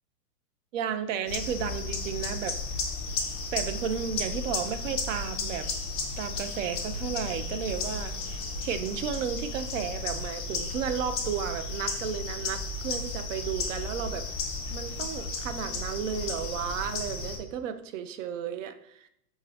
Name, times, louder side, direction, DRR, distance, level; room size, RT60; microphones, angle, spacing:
voice 1, 0.7-2.6 3.5-5.7 6.2-14.3 14.7-19.1, right 8 dB, 55° right, 10 dB, 0.5 m, -33 dB
sound 1, 1.3-17.4, left 3 dB, 30° left, 0.4 m, -34 dB
4.6 x 2.7 x 3.2 m, 0.78 s
hypercardioid pair, 140°, 47 cm